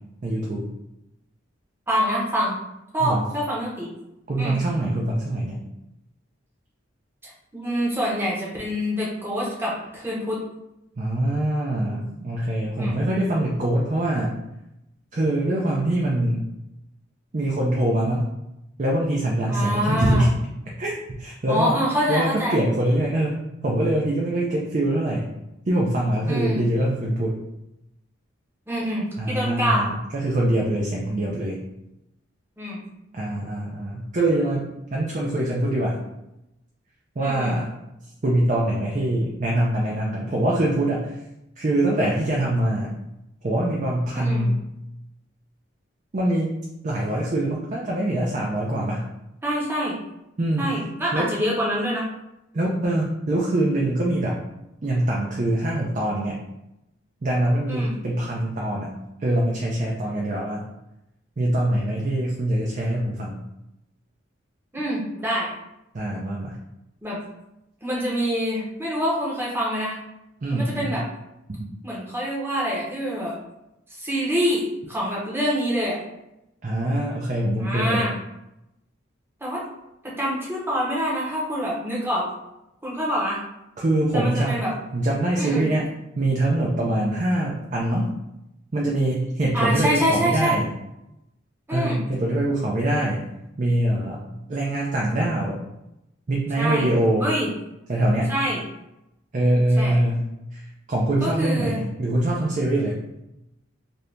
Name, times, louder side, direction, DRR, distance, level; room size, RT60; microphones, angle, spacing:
voice 1, 0.2-0.7 3.0-3.2 4.3-5.6 11.0-14.4 15.1-16.4 17.3-18.3 18.8-20.4 20.8-21.7 22.1-25.4 25.7-27.4 29.2-31.6 33.1-34.6 34.9-36.0 37.2-37.7 38.2-41.2 41.6-42.9 43.4-44.6 46.1-46.5 46.8-49.1 50.4-50.8 51.1-51.3 52.5-54.4 54.8-56.4 57.2-58.9 59.2-60.6 61.4-63.4 65.9-66.6 70.4-71.0 76.6-78.1 83.8-84.6 84.9-85.9 86.2-88.1 88.7-90.7 91.7-93.2 93.6-94.2 94.5-95.6 96.3-97.3 97.9-98.3 99.3-100.3 100.5-103.0, right 1 dB, 40° right, -3 dB, 0.4 m, -23 dB
voice 2, 1.9-2.6 2.9-3.9 4.4-4.5 7.2-10.4 11.9-12.0 12.8-13.0 19.5-20.3 21.5-22.6 26.3-26.7 28.7-29.9 32.6-32.8 37.2-37.6 44.1-44.5 49.4-50.0 50.6-52.0 57.7-57.9 64.7-65.5 67.0-67.2 67.8-70.0 70.5-71.0 71.8-73.4 74.0-76.0 77.6-78.1 79.4-79.6 80.0-82.3 82.8-83.4 84.1-84.7 85.4-85.7 89.5-90.6 91.7-92.0 96.6-96.9 97.2-97.5 98.3-98.6 99.8-100.0 101.2-101.8, equal, 10° right, -5 dB, 0.8 m, -26 dB
2.8 x 2.6 x 3.3 m, 0.88 s
head